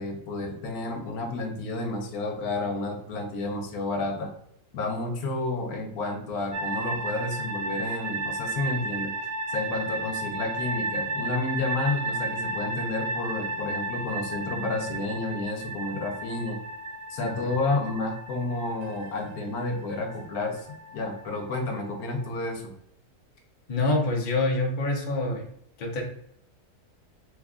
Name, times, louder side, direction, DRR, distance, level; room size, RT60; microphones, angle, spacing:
voice 1, 0.0-4.3 4.7-9.1 9.5-16.6 17.1-20.7 20.9-22.7, left 2 dB, 75° left, 4 dB, 1.2 m, -30 dB
sound 1, 6.5-22.3, right 2 dB, 75° right, 1.0 m, -34 dB
voice 2, 23.7-25.4 25.8-26.0, left 2 dB, 55° left, 0 dB, 0.5 m, -26 dB
3.2 x 2.3 x 3.6 m, 0.72 s
omnidirectional pair, 1.6 m